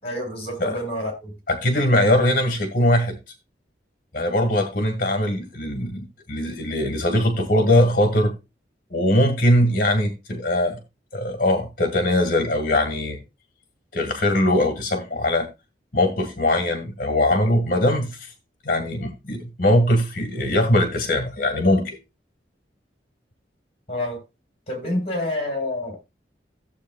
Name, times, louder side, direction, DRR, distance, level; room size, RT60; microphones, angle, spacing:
voice 1, 0.0-1.3 23.9-24.2 24.7-26.0, left 1 dB, 35° left, 5.1 m, -28 dB
voice 2, 1.5-3.2 4.1-8.3 8.9-10.8 11.1-13.2 13.9-15.5 15.9-18.3 18.6-22.0, left 1 dB, 50° left, 1.9 m, -21 dB
15.5 x 7.5 x 2.4 m
head